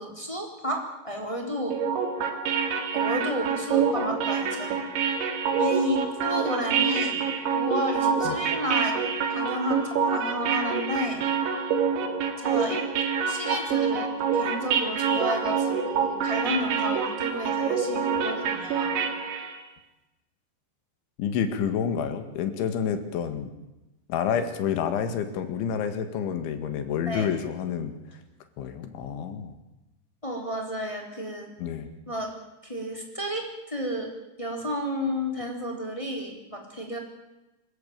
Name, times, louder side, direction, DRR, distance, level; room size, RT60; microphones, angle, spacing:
voice 1, 0.0-1.8 2.9-5.2 5.6-7.2 7.5-9.0 9.3-11.2 12.4-12.8 13.2-19.0 27.1-27.3 30.2-31.5 32.1-32.3 32.6-34.1 34.4-37.0, equal, 10° left, 2 dB, 3.2 m, -31 dB
sound 1, 1.7-19.6, right 6 dB, 80° right, 4.5 m, -26 dB
voice 2, 21.2-23.5 24.1-28.2 28.6-29.6 31.6-31.9, left 7 dB, 90° left, 8 dB, 4.3 m, -29 dB
26.0 x 14.0 x 8.9 m, 1.0 s
omnidirectional pair, 5.2 m